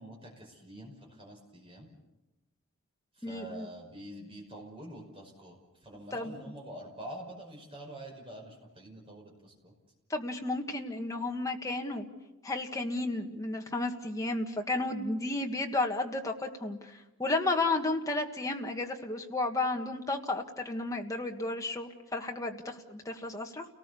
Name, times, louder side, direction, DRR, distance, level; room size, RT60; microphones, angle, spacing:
voice 1, 0.0-1.9 3.2-9.7, right 1 dB, 25° right, 0 dB, 5.6 m, -46 dB
voice 2, 3.2-3.7 6.1-6.3 10.1-12.0 12.4-16.9 17.2-23.6, left 2 dB, 15° left, 2 dB, 1.6 m, -33 dB
30.0 x 19.0 x 6.9 m, 1.0 s
head